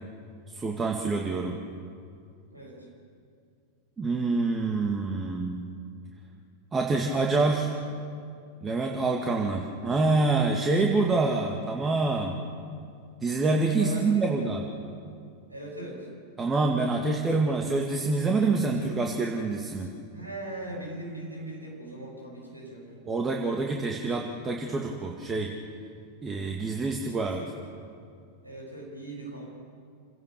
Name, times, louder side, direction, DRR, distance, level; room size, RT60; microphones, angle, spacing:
voice 1, 0.5-1.6 4.0-5.6 6.7-7.7 8.6-12.4 13.2-14.6 16.4-19.9 23.1-25.5 26.2-27.4, right 3 dB, 20° right, 1 dB, 2.0 m, -26 dB
voice 2, 2.5-2.9 13.6-14.6 15.5-16.1 20.1-23.1 27.3-27.5 28.4-29.5, right 1 dB, 85° right, -2 dB, 7.6 m, -39 dB
28.0 x 17.0 x 7.0 m, 2.4 s
figure-of-eight pair, 90°, 0 cm